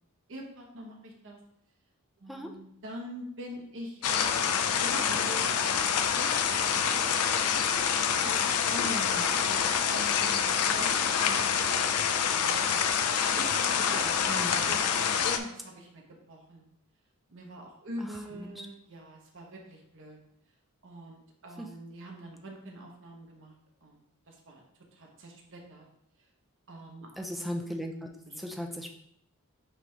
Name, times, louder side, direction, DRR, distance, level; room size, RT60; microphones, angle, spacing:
voice 1, 0.3-1.4 2.2-7.2 8.7-11.9 12.3-12.8 13.4-14.2 14.7-15.0 15.2-16.0 16.3-16.6 17.3-20.2 20.8-23.5 23.8-24.0 24.3-24.6 24.9-25.8 26.7-27.1 28.3-28.4, right 1 dB, 60° right, 0 dB, 1.0 m, -43 dB
sound 1, 4.0-15.4, left 7 dB, 85° left, 0.5 m, -27 dB
voice 2, 8.2-8.7 14.3-14.7 18.0-18.7 21.6-21.7 27.2-28.1 28.4-28.9, equal, ahead, 2 dB, 0.6 m, -38 dB
8.9 x 3.3 x 3.3 m, 0.73 s
head